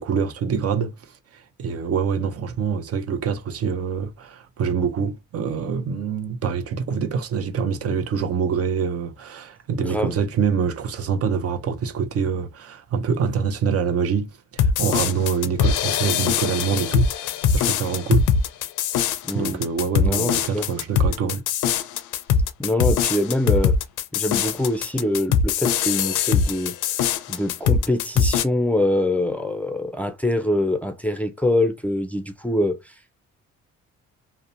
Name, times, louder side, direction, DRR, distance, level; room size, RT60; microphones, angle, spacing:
voice 1, 0.0-18.3 19.3-21.4, right 6 dB, 50° right, 0.6 m, -25 dB
voice 2, 9.8-10.2 19.3-19.6 20.0-20.7 22.6-23.8 24.1-26.8 27.3-32.9, left 1 dB, 5° left, 0.4 m, -24 dB
sound 1, 14.6-28.4, left 7 dB, 85° left, 0.5 m, -22 dB
2.7 x 2.1 x 2.7 m
cardioid pair, 90°, 30 cm